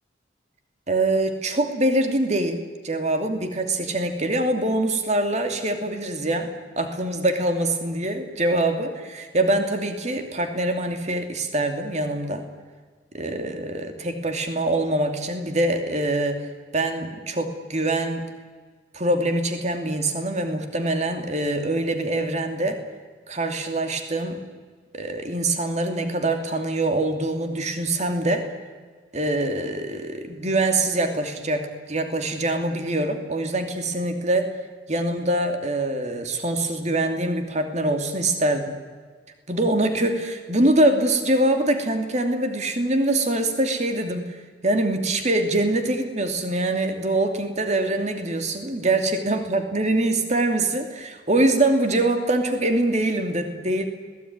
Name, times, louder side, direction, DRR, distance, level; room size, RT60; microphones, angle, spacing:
voice 1, 0.9-6.5 6.8-12.4 13.1-16.4 16.7-18.3 18.9-22.8 23.3-24.4 24.9-28.4 29.1-34.5 34.9-38.7 39.5-44.4 44.6-53.9, right 1 dB, 40° right, 6 dB, 2.7 m, -24 dB
25.5 x 19.0 x 9.6 m, 1.5 s
head